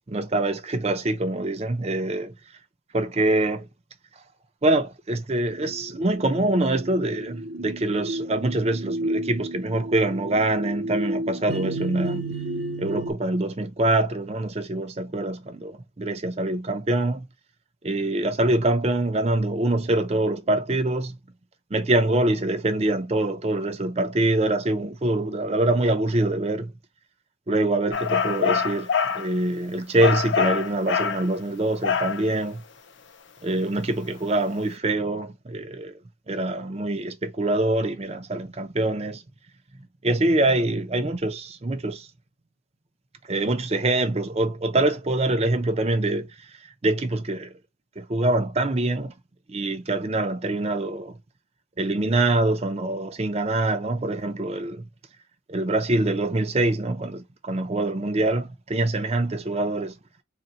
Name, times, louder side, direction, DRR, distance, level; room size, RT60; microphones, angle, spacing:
voice 1, 0.0-2.3 2.9-3.7 4.6-12.3 12.8-17.3 17.8-21.2 21.7-26.7 27.5-28.9 29.1-32.6 33.4-35.9 36.3-39.2 40.0-42.1 43.3-46.3 46.8-47.5 48.0-49.1 49.5-51.2 51.8-54.9 55.5-59.9, right 2 dB, 30° right, 0.5 m, -24 dB
sound 1, 5.5-13.1, right 1 dB, 70° right, 0.8 m, -32 dB
sound 2, 27.9-29.3 30.0-31.2 31.8-32.2, left 6 dB, 60° left, 0.5 m, -24 dB
3.8 x 2.2 x 4.2 m
head